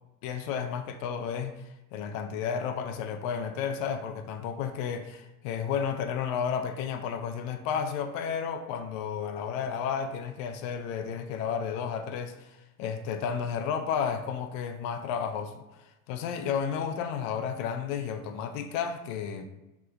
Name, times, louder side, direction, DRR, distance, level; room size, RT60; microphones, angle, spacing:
voice 1, 0.2-19.5, left 7 dB, 60° left, 0.5 m, -32 dB
3.1 x 2.9 x 2.4 m
hypercardioid pair, 90°, 46 cm